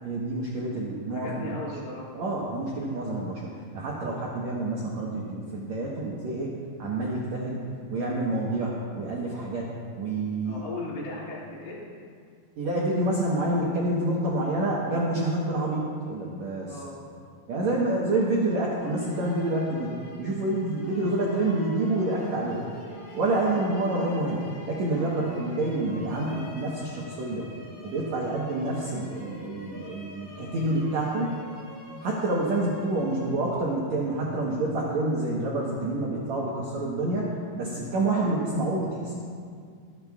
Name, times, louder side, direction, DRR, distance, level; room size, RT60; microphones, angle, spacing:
voice 1, 0.0-1.6 2.1-6.5 6.8-7.6 7.9-9.7 10.0-10.6 12.6-16.8 17.5-22.6 23.1-27.5 27.8-31.4 32.0-39.1, right 2 dB, 75° right, -5 dB, 1.6 m, -28 dB
voice 2, 1.1-2.1 10.4-11.8 16.6-17.0 23.5-23.7 38.2-38.4, left 2 dB, 90° left, -6 dB, 4.6 m, -37 dB
sound 1, 18.8-33.9, left 1 dB, 70° left, 4.6 m, -46 dB
25.0 x 8.8 x 2.4 m, 2.2 s
omnidirectional pair, 4.9 m